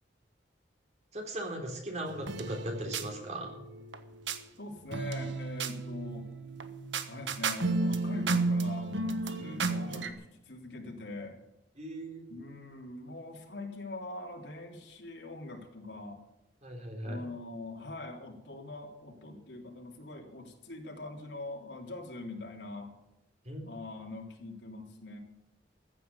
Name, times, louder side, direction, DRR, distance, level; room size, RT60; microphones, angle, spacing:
voice 1, 1.1-3.6 11.8-12.2 16.6-17.2 23.5-23.6, right 1 dB, 40° right, 2 dB, 3.8 m, -38 dB
sound 1, 2.1-4.4 4.9-10.1, right 3 dB, 90° right, 1.3 m, -33 dB
voice 2, 4.6-6.3 7.1-11.4 12.3-16.2 17.0-22.9 23.7-25.2, left 2 dB, 70° left, 1 dB, 3.3 m, -43 dB
15.0 x 9.4 x 7.0 m, 0.91 s
head